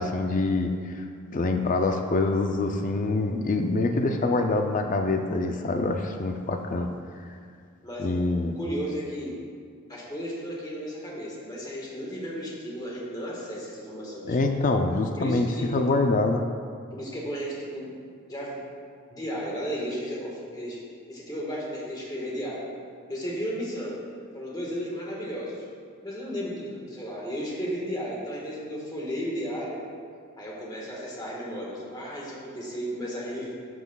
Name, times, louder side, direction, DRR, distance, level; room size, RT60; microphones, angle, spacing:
voice 1, 0.0-6.9 8.0-8.6 14.3-16.4, left 2 dB, 35° left, 5 dB, 0.4 m, -25 dB
voice 2, 7.8-8.2 8.5-9.3 9.9-14.4 15.2-15.7 16.9-17.9 18.3-18.6 19.1-20.8 21.1-22.7 23.1-24.0 24.3-25.6 26.0-29.8 30.4-33.5, equal, 20° left, -4 dB, 1.4 m, -34 dB
12.0 x 6.0 x 2.3 m, 2.2 s
head